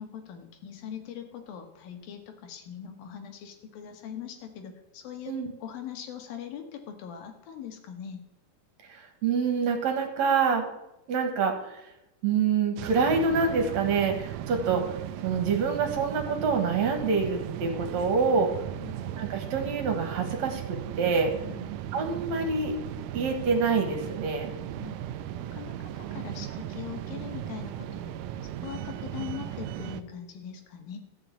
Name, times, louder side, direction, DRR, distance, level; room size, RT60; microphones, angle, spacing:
voice 1, 0.0-5.3 5.6-8.2 18.8-18.9 21.4-21.7 24.8-25.0 25.5-28.1 28.6-31.0, left 8 dB, 75° left, 6 dB, 3.0 m, -41 dB
voice 2, 8.9-10.7 11.1-11.8 12.2-14.8 15.2-18.5 19.2-21.3 21.9-22.8 23.1-24.5, right 5 dB, 55° right, 4 dB, 2.4 m, -26 dB
sound 1, 12.8-30.0, right 11 dB, 90° right, 1.8 m, -37 dB
13.5 x 6.0 x 8.1 m, 0.91 s
omnidirectional pair, 4.3 m